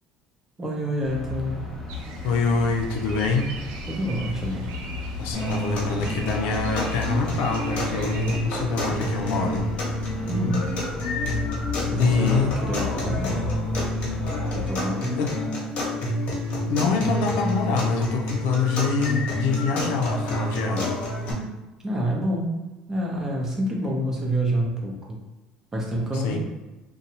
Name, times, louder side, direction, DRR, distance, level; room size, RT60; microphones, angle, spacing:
voice 1, 0.6-1.6 3.9-4.7 10.3-10.7 11.9-13.3 14.5-15.2 21.8-22.5 22.9-25.2 25.7-26.4, equal, 20° right, -2 dB, 0.7 m, -27 dB
sound 1, 1.0-14.7, left 3 dB, 25° left, 0.9 m, -34 dB
sound 2, 1.9-8.4, right 4 dB, 85° right, 0.5 m, -42 dB
voice 2, 2.2-3.5 5.2-9.7 12.0-12.6 15.2-15.3 16.7-21.0 26.1-26.4, left 4 dB, 80° left, 2 dB, 0.4 m, -25 dB
sound 3, 5.3-21.3, left 1 dB, 55° left, 1.0 m, -28 dB
2.7 x 2.2 x 2.9 m, 1.1 s
cardioid pair, 115°, 3 cm